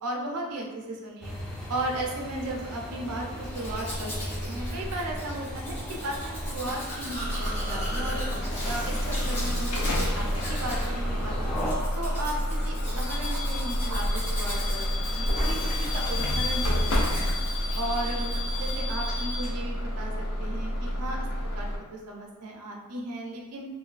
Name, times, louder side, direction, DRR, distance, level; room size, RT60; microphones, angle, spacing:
voice 1, 0.0-1.3 1.7-4.2 4.4-8.3 8.6-11.5 11.9-12.4 12.6-14.8 15.1-16.8 17.1-17.3 17.7-18.3 18.6-21.2 21.5-23.7, right 1 dB, 90° right, 0 dB, 0.5 m, -35 dB
sound 1, 1.2-11.7, equal, 5° left, 0.3 m, -37 dB
Domestic sounds home sounds, 3.4-18.8 19.1-19.5, equal, 90° left, 1.2 m, -36 dB
Bus / Alarm, 7.2-21.8, left 1 dB, 70° left, 0.5 m, -29 dB
2.6 x 2.2 x 2.4 m, 1.3 s
head